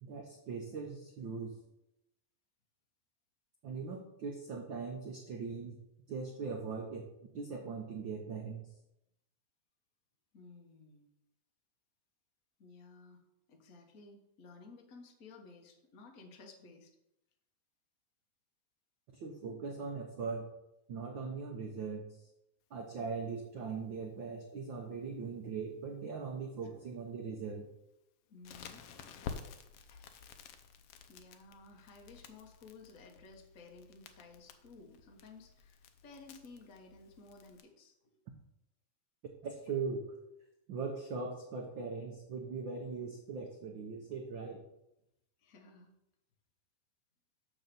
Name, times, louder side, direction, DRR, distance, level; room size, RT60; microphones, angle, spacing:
voice 1, 0.0-1.5 3.6-5.8 6.1-7.0 7.3-8.6 19.1-20.5 20.9-22.0 22.7-27.7 39.4-40.2 40.7-44.6, right 5 dB, 85° right, 2 dB, 1.0 m, -40 dB
voice 2, 10.3-11.1 12.6-13.2 13.5-17.0 26.6-26.9 28.3-28.8 29.8-30.2 31.1-38.2 45.4-45.9, left 3 dB, 65° left, 2 dB, 0.8 m, -56 dB
Crackle, 28.4-37.6, left 6 dB, 90° left, 1.2 m, -51 dB
6.8 x 6.4 x 6.7 m, 0.86 s
omnidirectional pair, 3.6 m